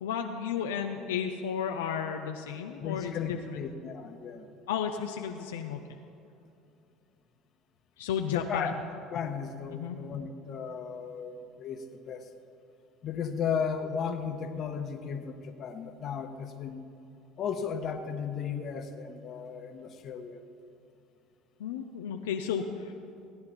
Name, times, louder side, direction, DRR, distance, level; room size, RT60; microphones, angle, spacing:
voice 1, 0.0-3.6 4.7-5.8 8.0-8.8 9.7-10.0 21.6-22.9, left 7 dB, 85° left, 4 dB, 0.6 m, -33 dB
voice 2, 2.8-4.4 8.2-8.7 9.1-12.3 13.0-16.8 17.4-20.4, left 7 dB, 50° left, 6 dB, 1.1 m, -35 dB
17.0 x 9.5 x 4.4 m, 2.7 s
hypercardioid pair, 80°, 0 cm